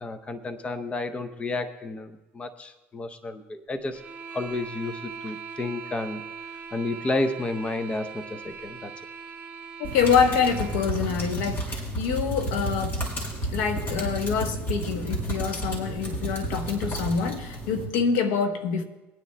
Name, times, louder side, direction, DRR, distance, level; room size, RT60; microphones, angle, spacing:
voice 1, 0.0-4.0 4.3-6.2 6.7-8.9, left 2 dB, 20° left, 0.7 m, -31 dB
sound 1, 3.9-11.0, right 6 dB, 25° right, 1.5 m, -41 dB
voice 2, 9.8-13.1 13.5-18.8, left 6 dB, 85° left, 1.0 m, -26 dB
sound 2, 9.8-17.8, right 1 dB, 35° left, 4.6 m, -31 dB
23.5 x 9.7 x 2.2 m
supercardioid pair, 105°, 6 cm